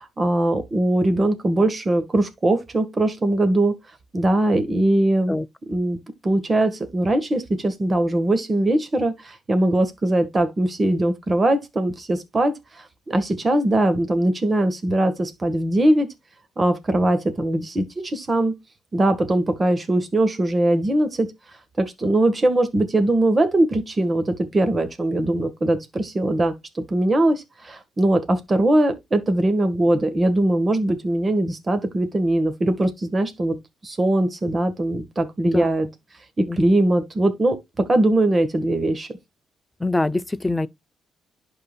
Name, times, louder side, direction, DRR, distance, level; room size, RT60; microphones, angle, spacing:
voice 1, 0.0-3.7 4.1-5.3 5.7-6.0 6.2-16.1 16.6-18.5 18.9-21.3 21.8-33.6 33.8-35.9 36.4-39.1, right 1 dB, 30° right, 1.6 m, -21 dB
voice 2, 39.8-40.7, left 2 dB, 10° left, 0.6 m, -23 dB
11.5 x 3.9 x 2.4 m
cardioid pair, 90°, 0 cm